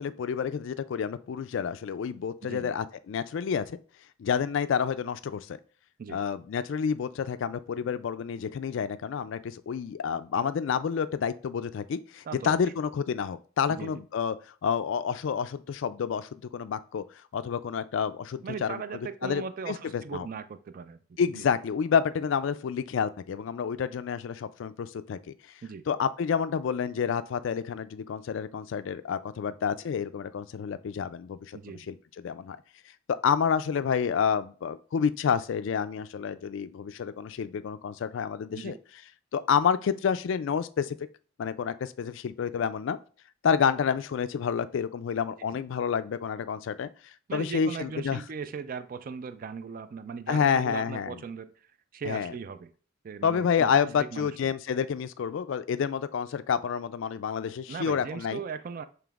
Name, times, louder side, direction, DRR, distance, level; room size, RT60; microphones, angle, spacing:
voice 1, 0.0-3.8 4.2-5.6 6.1-14.4 14.6-17.0 17.3-18.8 19.2-20.3 21.2-25.2 25.9-31.6 31.9-32.0 32.2-32.6 33.2-38.7 39.3-41.0 41.4-43.0 43.4-48.2 50.3-51.2 52.0-52.3 53.2-58.4, left 7 dB, 60° left, 12 dB, 0.3 m, -29 dB
voice 2, 2.4-2.8 6.0-6.2 12.2-12.6 13.7-14.0 18.4-21.0 21.3-21.5 25.6-25.8 31.5-31.9 38.5-38.8 45.4-45.6 47.3-52.7 53.0-53.7 54.0-54.5 57.7-58.8, right 5 dB, 40° right, 12 dB, 0.3 m, -38 dB
6.9 x 3.2 x 2.4 m, 0.41 s
head